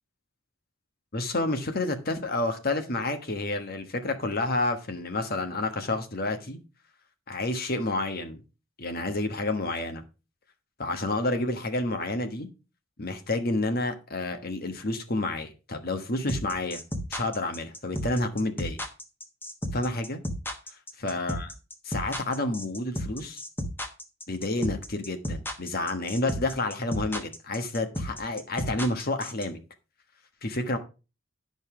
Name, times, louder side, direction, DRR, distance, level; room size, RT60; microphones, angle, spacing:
voice 1, 1.1-6.6 7.3-8.4 8.8-10.0 10.8-12.5 13.0-16.8 17.1-18.8 19.7-20.2 21.0-21.5 21.8-23.4 24.3-29.6 30.4-30.8, left 2 dB, 50° left, 1.3 m, -29 dB
sound 1, 16.3-29.4, equal, 10° left, 1.1 m, -33 dB
11.0 x 5.4 x 4.9 m
head